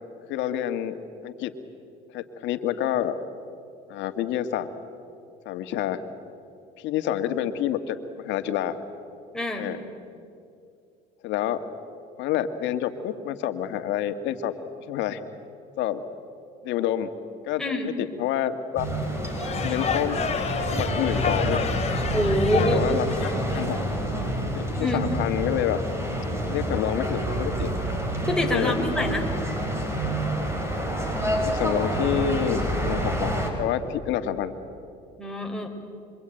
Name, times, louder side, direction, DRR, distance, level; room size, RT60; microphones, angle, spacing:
voice 1, 0.3-1.0 1.2-1.5 2.1-3.2 3.9-4.7 5.5-6.0 6.8-8.8 9.6-9.8 11.2-11.6 12.2-14.5 14.9-15.2 15.8-16.0 16.6-17.1 17.4-17.6 18.0-18.9 19.6-20.2 20.7-21.6 22.5-23.8 24.5-25.8 26.5-27.7 28.4-28.8 31.5-33.3 33.6-34.5, left 11 dB, 70° left, 8 dB, 2.0 m, -28 dB
voice 2, 9.3-9.7 17.6-17.9 22.1-22.8 24.8-25.1 28.2-29.3 35.2-35.7, left 1 dB, 5° left, 1 dB, 4.5 m, -26 dB
sound 1, 18.8-33.5, right 1 dB, 15° right, 5.6 m, -28 dB
sound 2, 19.2-23.8, left 6 dB, 35° left, 2.8 m, -30 dB
26.5 x 24.0 x 9.2 m, 2.5 s
supercardioid pair, 95°, 20 cm